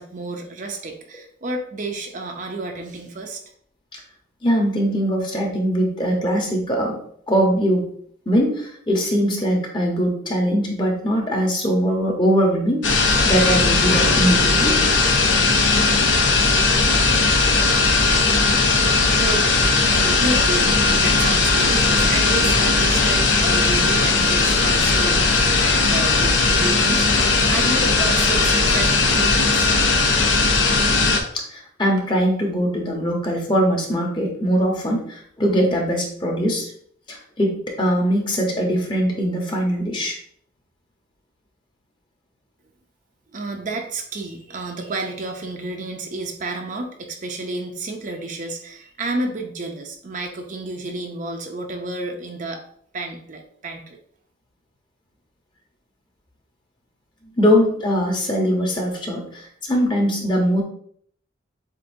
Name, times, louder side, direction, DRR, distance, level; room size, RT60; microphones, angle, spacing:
voice 1, 0.0-3.4 17.5-18.0 18.3-18.9 19.2-29.7 43.3-52.6 52.9-54.0, right 2 dB, 40° right, 3 dB, 0.6 m, -31 dB
voice 2, 4.4-6.9 7.3-7.8 8.3-14.7 31.3-36.7 37.1-37.5 37.8-40.2 57.4-60.6, equal, 25° left, 0 dB, 0.9 m, -21 dB
sound 1, 12.8-31.2, left 3 dB, 70° left, 0.8 m, -18 dB
7.5 x 2.6 x 2.6 m, 0.62 s
head